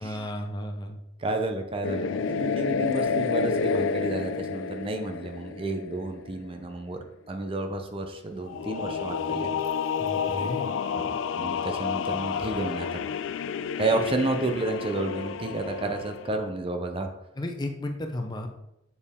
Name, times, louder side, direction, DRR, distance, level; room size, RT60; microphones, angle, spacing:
voice 1, 0.0-1.0 10.0-10.7 17.4-18.5, left 1 dB, 20° left, 4 dB, 0.6 m, -33 dB
voice 2, 1.2-7.0 7.3-9.6 11.0-12.9 13.8-17.1, right 2 dB, 30° right, 5 dB, 0.5 m, -31 dB
sound 1, 1.8-6.4 8.5-16.3, left 6 dB, 85° left, 0.3 m, -30 dB
7.0 x 4.4 x 3.6 m, 0.85 s
head